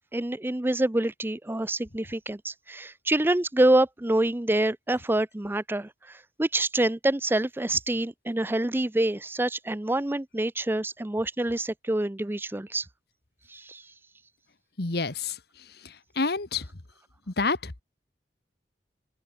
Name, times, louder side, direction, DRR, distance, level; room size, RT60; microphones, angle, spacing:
voice 1, 0.1-12.9 13.5-13.8, right 1 dB, 10° right, 0.5 m, -26 dB
voice 2, 14.8-15.4 16.2-16.6 17.4-17.8, left 3 dB, 60° left, 1.6 m, -27 dB
open air
head